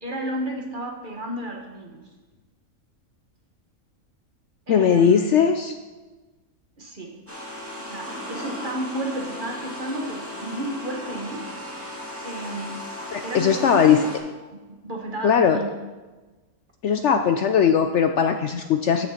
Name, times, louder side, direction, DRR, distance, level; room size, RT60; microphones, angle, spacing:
voice 1, 0.0-2.0 4.7-5.2 6.8-7.1 7.8-11.5 12.2-12.8 13.2-14.1 14.5-15.7, right 1 dB, 35° right, 0 dB, 1.6 m, -32 dB
voice 2, 4.7-5.7 13.1-14.0 15.2-15.6 16.8-19.1, left 7 dB, 65° left, 7 dB, 0.8 m, -19 dB
sound 1, 7.3-14.2, left 1 dB, 10° right, 1.8 m, -36 dB
14.0 x 6.3 x 4.4 m, 1.2 s
omnidirectional pair, 1.5 m